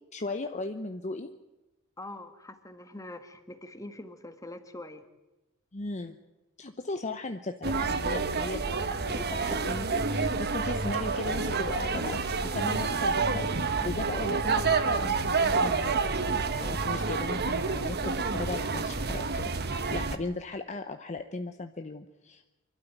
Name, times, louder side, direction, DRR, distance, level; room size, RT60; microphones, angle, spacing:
voice 1, 0.1-1.3 5.7-6.2 6.6-16.1 16.6-22.5, left 2 dB, 35° left, 7 dB, 0.8 m, -37 dB
voice 2, 2.0-5.0, left 1 dB, 15° left, 8 dB, 1.6 m, -44 dB
sound 1, 7.6-20.2, right 4 dB, 50° right, 1.2 m, -28 dB
25.5 x 12.5 x 9.4 m, 1.0 s
head